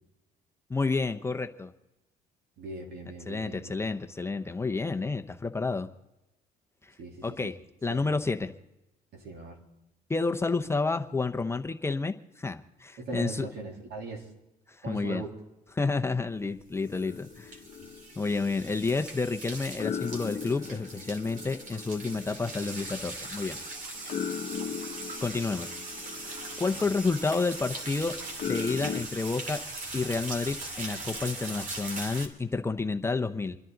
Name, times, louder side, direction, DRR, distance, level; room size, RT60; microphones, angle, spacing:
voice 1, 0.7-1.7 3.3-5.9 7.2-7.6 7.8-8.5 10.1-13.5 14.8-15.2 15.8-17.5 18.2-23.6 24.0-24.1 25.2-25.7 26.0-28.1 28.5-29.6 29.9-33.6, left 3 dB, 15° left, 6 dB, 0.7 m, -30 dB
voice 2, 2.6-3.8 7.0-7.5 7.9-8.2 9.1-9.6 13.0-14.3 14.8-15.3 24.6-24.7 26.7-26.9, right 3 dB, 70° right, 0 dB, 3.2 m, -40 dB
sound 1, 16.6-32.3, right 2 dB, 50° right, 2.5 m, -40 dB
sound 2, 16.8-19.4 19.8-29.0, left 7 dB, 50° left, 0.9 m, -39 dB
29.0 x 10.5 x 3.9 m, 0.96 s
cardioid pair, 110°, 17 cm